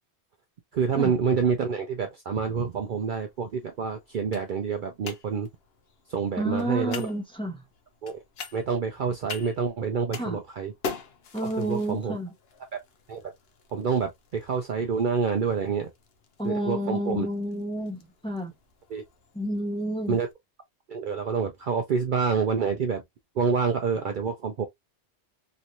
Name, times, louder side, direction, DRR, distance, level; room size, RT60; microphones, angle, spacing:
voice 1, 0.7-5.5 6.1-7.1 8.0-8.2 8.5-10.7 11.4-12.2 12.7-12.8 13.1-13.3 13.7-15.9 16.4-17.3 18.9-19.0 20.1-20.3 20.9-23.0 23.4-24.6, right 6 dB, 55° right, 0.6 m, -27 dB
sound 1, 2.4-20.3, left 5 dB, 65° left, 0.9 m, -45 dB
voice 2, 6.4-7.6 10.1-10.4 11.3-12.3 16.4-18.5 19.3-20.2, equal, 5° left, 0.8 m, -30 dB
3.1 x 2.9 x 2.5 m
omnidirectional pair, 1.1 m